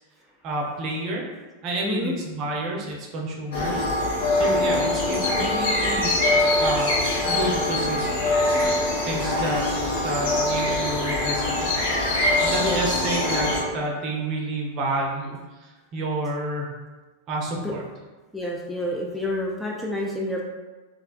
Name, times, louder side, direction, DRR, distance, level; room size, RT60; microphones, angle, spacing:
voice 1, 0.4-1.3 1.6-3.9 4.3-6.1 6.6-7.0 7.2-8.1 8.6-8.7 9.1-9.6 10.0-11.8 12.4-16.7 17.3-17.8, right 1 dB, 35° right, -1 dB, 0.6 m, -29 dB
voice 2, 1.8-2.2 12.6-13.0 17.6-17.7 18.3-20.4, left 1 dB, 5° left, -3 dB, 0.4 m, -29 dB
sound 1, 3.5-13.6, left 2 dB, 55° left, 0.8 m, -23 dB
3.2 x 2.4 x 2.3 m, 1.2 s
figure-of-eight pair, 90°, 0 cm